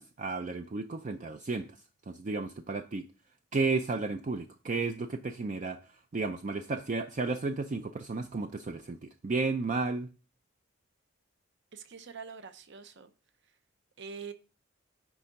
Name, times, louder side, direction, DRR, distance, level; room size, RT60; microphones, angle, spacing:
voice 1, 0.0-1.8 2.1-3.1 3.5-10.1, right 3 dB, 35° right, 7 dB, 0.4 m, -33 dB
voice 2, 11.7-13.1 14.0-14.3, right 5 dB, 55° right, 10 dB, 0.8 m, -44 dB
10.0 x 3.6 x 5.2 m, 0.35 s
head